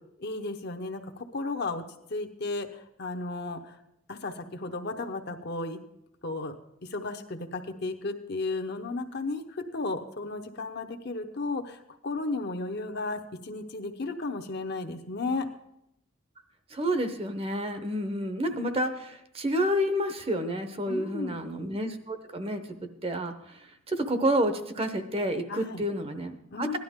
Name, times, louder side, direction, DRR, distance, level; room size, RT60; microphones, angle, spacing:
voice 1, 0.2-1.8 2.1-3.8 4.1-5.8 6.2-6.6 6.8-15.5 20.9-21.4 25.5-25.8 26.5-26.8, left 3 dB, 50° left, 5 dB, 0.9 m, -34 dB
voice 2, 16.7-22.6 23.0-23.6 23.9-26.8, equal, 25° right, 9 dB, 0.8 m, -29 dB
16.5 x 11.5 x 3.6 m, 0.79 s
head